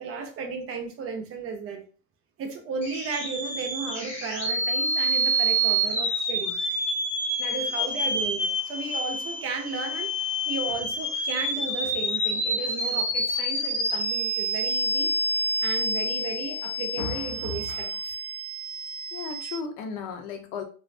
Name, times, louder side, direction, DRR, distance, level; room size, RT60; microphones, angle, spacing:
voice 1, 0.0-1.8 2.4-6.6 7.4-15.1 15.6-18.1, right 4 dB, 35° right, 0.5 m, -34 dB
sound 1, 2.8-19.6, right 1 dB, 15° left, 1.0 m, -28 dB
voice 2, 17.0-17.8 19.1-20.6, left 5 dB, 85° left, 0.6 m, -35 dB
2.4 x 2.2 x 2.4 m
cardioid pair, 155°, 38 cm